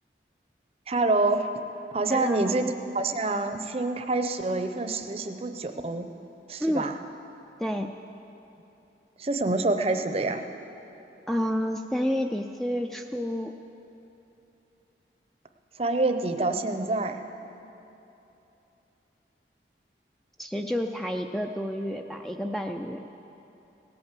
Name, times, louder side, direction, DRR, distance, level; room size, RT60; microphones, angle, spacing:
voice 1, 0.9-1.5 1.9-2.6 2.9-6.1 6.5-7.0 9.2-10.4 15.8-17.2, right 2 dB, 35° right, 7 dB, 0.6 m, -26 dB
voice 2, 2.1-2.5 6.6-6.9 7.6-7.9 11.3-13.5 20.4-23.0, equal, ahead, 4 dB, 0.3 m, -29 dB
17.0 x 8.7 x 7.4 m, 3.0 s
head